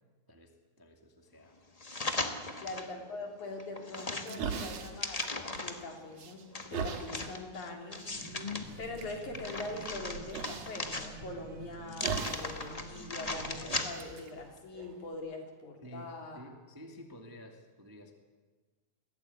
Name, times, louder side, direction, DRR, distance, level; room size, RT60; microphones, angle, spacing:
voice 1, 0.3-1.6 2.5-3.0 15.8-18.1, equal, 10° right, 3 dB, 1.5 m, -52 dB
sound 1, 1.8-2.9 3.4-5.9 6.5-8.6 9.1-11.4 11.9-14.2 14.6-14.7, left 2 dB, 50° left, 0.4 m, -38 dB
voice 2, 2.6-8.1 8.8-16.5, left 2 dB, 70° left, 2 dB, 4.5 m, -43 dB
sound 2, 4.0-5.8 6.2-7.1 8.0-8.1 8.6-9.1 10.3-10.8 12.0-12.6 12.9-13.0 13.6-15.1, right 6 dB, 60° right, 2.7 m, -39 dB
sound 3, 8.0-13.9, right 2 dB, 80° right, 8.0 m, -49 dB
22.0 x 17.0 x 9.6 m, 1.4 s
omnidirectional pair, 3.5 m